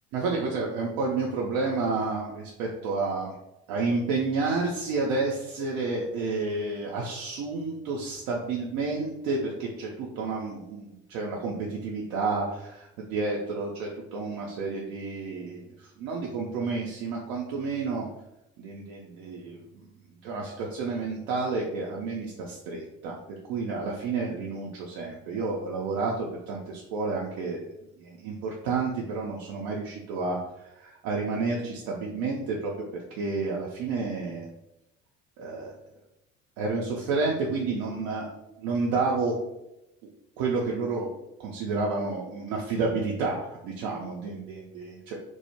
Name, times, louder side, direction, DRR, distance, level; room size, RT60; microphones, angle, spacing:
voice 1, 0.1-3.3 3.7-18.1 18.6-19.8 20.2-23.2 23.5-27.7 28.0-32.7 33.1-34.5 35.4-35.7 36.6-38.3 38.6-39.4 40.4-41.1 41.4-45.2, right 3 dB, 50° right, -2 dB, 0.5 m, -30 dB
2.2 x 2.0 x 2.9 m, 0.87 s
figure-of-eight pair, 55°, 38 cm